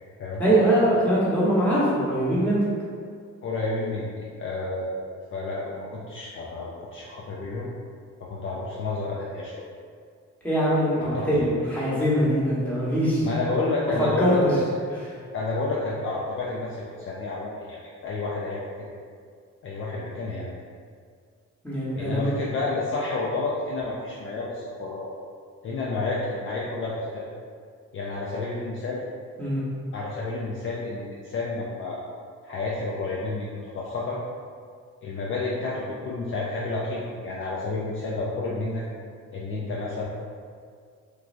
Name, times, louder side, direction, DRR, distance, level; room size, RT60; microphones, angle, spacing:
voice 1, 0.4-2.7 10.4-13.3 14.2-14.3 14.9-15.1 21.6-22.3 29.4-29.6, right 1 dB, 5° left, -9 dB, 1.0 m, -22 dB
voice 2, 3.4-7.7 8.2-9.6 11.0-11.5 13.2-14.4 15.3-18.7 19.6-20.5 21.9-25.1 25.6-27.3 27.9-29.0 29.9-32.0 32.4-34.2 35.0-38.8 39.3-40.0, left 3 dB, 45° left, -5 dB, 0.4 m, -30 dB
3.1 x 2.2 x 2.5 m, 2.1 s
cardioid pair, 90°, 30 cm